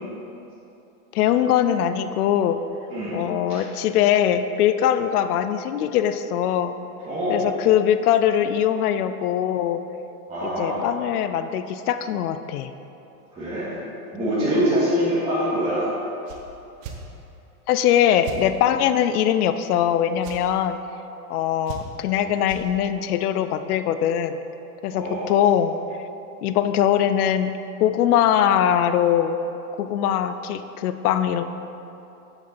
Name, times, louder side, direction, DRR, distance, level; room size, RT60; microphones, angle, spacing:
voice 1, 1.1-2.6 3.1-6.7 7.3-9.8 10.4-12.7 17.7-20.8 21.3-24.4 24.8-25.7 26.4-27.5 27.8-29.4 29.8-31.4, left 10 dB, 70° left, 10 dB, 0.6 m, -21 dB
voice 2, 7.1-7.4 10.3-10.8 13.3-13.8 14.1-15.9 24.9-25.3, equal, 10° right, -14 dB, 2.1 m, -24 dB
sound 1, 16.2-16.4 16.8-17.0 18.2-18.4 20.2-20.4 21.6-22.1 22.4-22.6, right 7 dB, 55° right, 1.3 m, -36 dB
8.1 x 7.1 x 4.3 m, 2.9 s
supercardioid pair, 150°, 46 cm